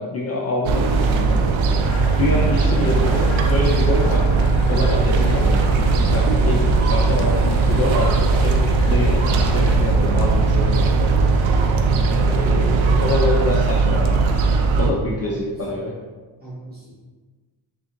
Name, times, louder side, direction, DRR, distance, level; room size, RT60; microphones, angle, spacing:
voice 1, 0.0-1.4 1.7-1.8 2.2-4.4 4.7-11.0 11.9-14.2 14.8-15.9, left 2 dB, 35° left, -4 dB, 0.4 m, -26 dB
sound 1, 0.6-14.9, right 4 dB, 90° right, 0.5 m, -18 dB
sound 2, 1.9-9.8, left 3 dB, 85° left, 0.6 m, -33 dB
voice 2, 14.7-15.3 16.4-17.1, right 2 dB, 20° right, -9 dB, 1.4 m, -37 dB
3.7 x 3.5 x 2.9 m, 1.4 s
wide cardioid pair, 155°, 45 cm